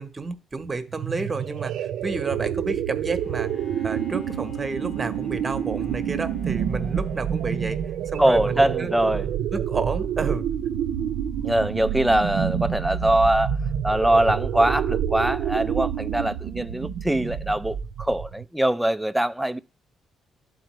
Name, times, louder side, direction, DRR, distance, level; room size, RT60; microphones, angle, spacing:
voice 1, 0.0-3.5 3.8-7.8 8.1-8.9 9.5-10.5, right 3 dB, 30° right, 1.0 m, -30 dB
sound 1, 0.9-18.5, right 9 dB, 80° right, 0.5 m, -28 dB
Bowed string instrument, 3.2-8.8, left 3 dB, 70° left, 1.6 m, -48 dB
voice 2, 8.2-9.3 11.4-13.6 13.8-19.6, right 1 dB, 5° right, 0.3 m, -22 dB
12.0 x 4.1 x 3.1 m
cardioid pair, 90°, 0 cm